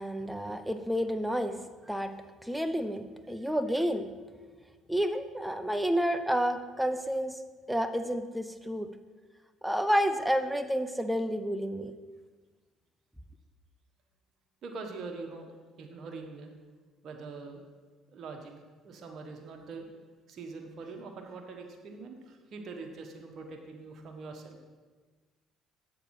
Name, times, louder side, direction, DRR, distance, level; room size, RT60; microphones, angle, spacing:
voice 1, 0.0-1.6 1.9-2.1 2.4-4.1 4.9-7.4 7.7-8.9 9.6-11.9, equal, 5° right, 9 dB, 0.7 m, -30 dB
voice 2, 14.6-15.5 15.8-16.5 17.0-17.6 18.1-18.5 18.8-19.9 20.3-24.6, right 4 dB, 55° right, 3 dB, 1.3 m, -43 dB
8.2 x 6.7 x 4.8 m, 1.4 s
supercardioid pair, 80°, 0 cm